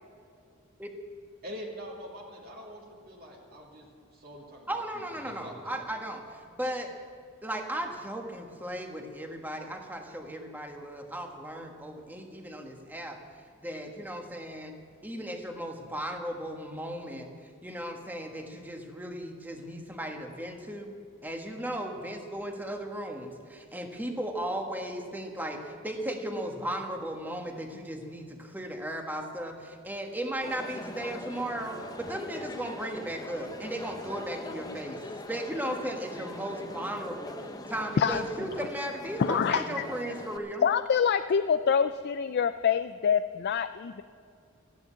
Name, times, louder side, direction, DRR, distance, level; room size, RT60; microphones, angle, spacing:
voice 1, 1.4-3.9 4.1-5.8, equal, 45° right, -2 dB, 2.5 m, -44 dB
voice 2, 4.7-6.9 7.4-13.2 13.6-14.7 15.0-17.3 17.6-20.9 21.2-35.0 35.3-37.4 37.7-40.7, right 1 dB, 10° right, 3 dB, 1.5 m, -36 dB
Crowd, 30.4-40.4, left 2 dB, 20° left, 0.8 m, -42 dB
voice 3, 39.2-39.6 40.6-44.0, left 7 dB, 50° left, 11 dB, 0.4 m, -25 dB
14.5 x 10.5 x 8.3 m, 2.4 s
head